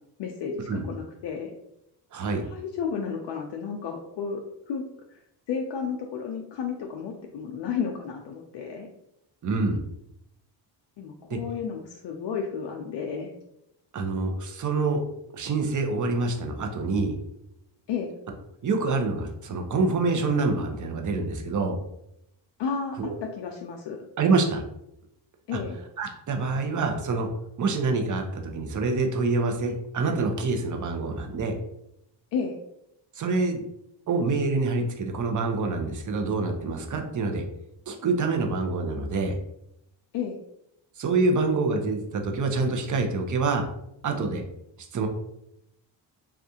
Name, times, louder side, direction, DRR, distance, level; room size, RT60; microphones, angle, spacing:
voice 1, 0.2-1.5 2.5-4.4 4.7-5.2 5.5-8.9 11.0-13.3 17.9-18.1 22.6-24.0 25.5-25.8 32.3-32.6 40.1-40.4, left 6 dB, 60° left, 1 dB, 0.6 m, -32 dB
voice 2, 2.1-2.4 9.4-9.8 11.3-11.4 13.9-15.0 15.3-17.1 18.6-21.8 23.0-23.2 24.2-24.6 25.5-25.6 26.0-27.3 27.6-31.5 33.1-33.6 34.1-37.4 37.9-39.4 41.0-43.7 44.0-44.4 44.9-45.1, right 3 dB, 40° right, 4 dB, 0.7 m, -26 dB
3.5 x 2.4 x 2.7 m, 0.80 s
cardioid pair, 80°, 49 cm